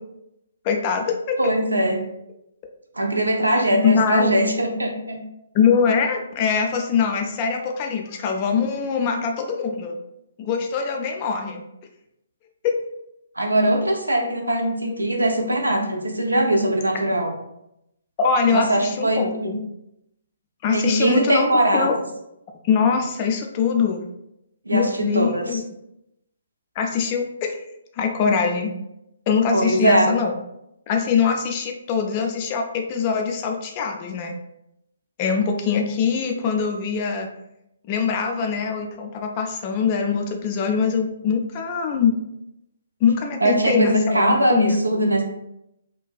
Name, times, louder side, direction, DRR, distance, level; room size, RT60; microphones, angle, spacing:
voice 1, 0.6-1.5 3.8-4.4 5.5-9.9 10.4-11.6 12.6-12.8 18.2-19.5 20.6-21.5 21.7-21.9 22.7-24.0 24.7-25.6 26.8-27.6 28.0-28.7 29.3-30.3 30.9-34.3 35.2-37.3 37.9-42.2 43.0-44.8, left 6 dB, 30° left, 3 dB, 0.3 m, -22 dB
voice 2, 1.4-2.0 2.9-5.2 13.4-17.3 18.5-19.5 20.7-21.9 24.7-25.6 29.5-30.1 43.4-45.2, right 1 dB, 75° right, 2 dB, 0.5 m, -21 dB
2.4 x 2.2 x 2.3 m, 0.83 s
figure-of-eight pair, 130°, 0 cm